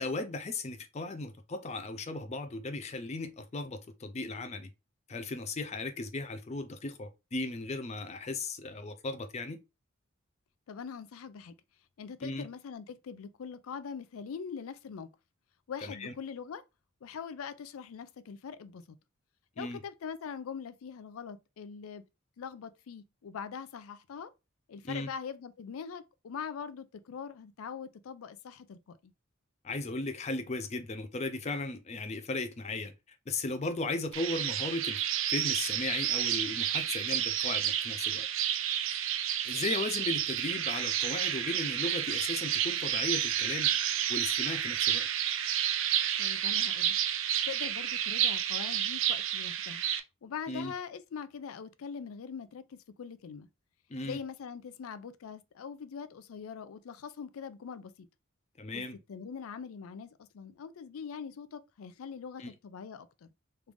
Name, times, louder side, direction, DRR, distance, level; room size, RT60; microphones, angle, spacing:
voice 1, 0.0-4.7 5.1-9.6 12.2-12.5 15.8-16.1 19.6-19.8 24.8-25.1 29.6-32.9 33.3-35.0 35.3-38.3 39.4-43.7 44.1-45.1 50.5-50.7 53.9-54.2 58.6-59.0 62.4-62.5, left 2 dB, 30° left, 0.4 m, -36 dB
voice 2, 10.7-11.6 12.0-15.1 15.7-16.6 17.0-19.0 19.6-22.0 22.4-24.3 24.7-29.1 46.2-47.0 47.4-49.9 50.2-53.5 54.0-58.1 58.7-58.8 59.1-63.3, left 6 dB, 90° left, 0.4 m, -42 dB
sound 1, 34.1-50.0, right 10 dB, 65° right, 0.4 m, -30 dB
3.2 x 2.5 x 3.4 m
head